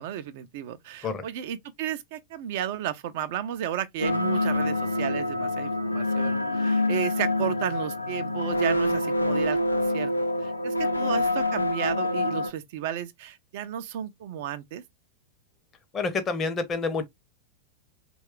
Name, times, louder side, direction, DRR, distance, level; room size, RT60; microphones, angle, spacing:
voice 1, 0.0-10.1 10.4-14.8, right 10 dB, 50° right, 0.4 m, -33 dB
sound 1, 4.0-12.5, left 1 dB, 90° left, 0.4 m, -26 dB
voice 2, 15.9-17.1, left 4 dB, 25° left, 0.7 m, -28 dB
3.1 x 2.3 x 3.0 m
figure-of-eight pair, 90°, 0 cm